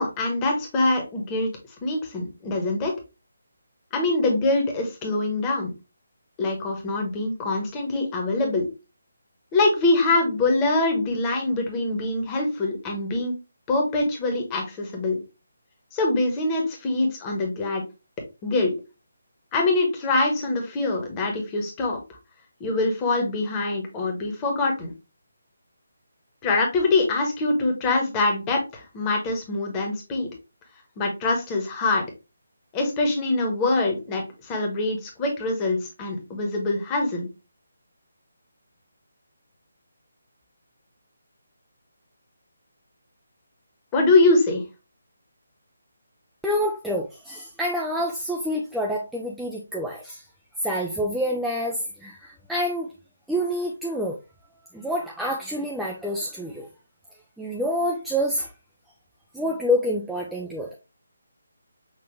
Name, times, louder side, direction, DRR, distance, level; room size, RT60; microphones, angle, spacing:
voice 1, 0.0-1.5 1.8-3.0 3.9-5.7 6.4-8.7 9.5-13.3 13.7-15.2 15.9-17.8 18.4-18.7 19.5-22.0 22.6-24.9 26.4-30.3 31.0-32.0 32.7-37.3 43.9-44.6, left 2 dB, 15° left, 1.2 m, -24 dB
voice 2, 46.4-50.2 50.6-52.9 53.3-54.2 54.7-56.7 57.4-58.5 59.3-60.7, equal, ahead, 0.4 m, -27 dB
6.0 x 2.8 x 3.2 m
figure-of-eight pair, 150°, 0 cm